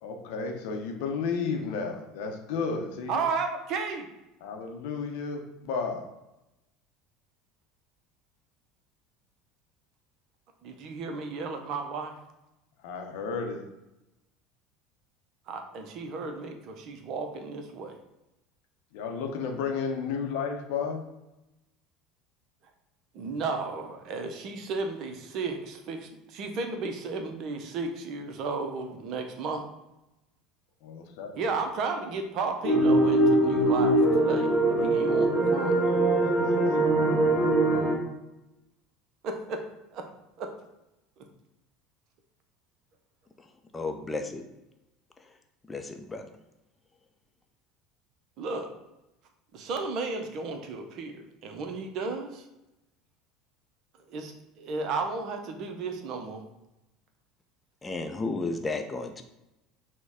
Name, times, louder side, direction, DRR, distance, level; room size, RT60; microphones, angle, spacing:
voice 1, 0.0-3.3 4.4-6.1 12.8-13.6 18.9-21.0 30.8-31.3 35.9-36.8, left 5 dB, 60° left, 3 dB, 0.6 m, -33 dB
voice 2, 3.1-4.1 10.6-12.2 15.5-18.0 23.1-29.6 31.3-35.9 39.2-39.6 39.9-40.0 40.4-40.5 41.2-41.3 48.4-48.7 49.5-52.4 54.1-56.4, right 4 dB, 50° right, 5 dB, 0.6 m, -34 dB
sound 1, 32.6-38.0, right 1 dB, ahead, 1.4 m, -22 dB
voice 3, 43.4-44.4 45.2-45.3 45.7-46.3 57.8-59.2, left 3 dB, 20° left, 6 dB, 0.5 m, -33 dB
6.0 x 2.2 x 3.5 m, 0.95 s
figure-of-eight pair, 70°, 0 cm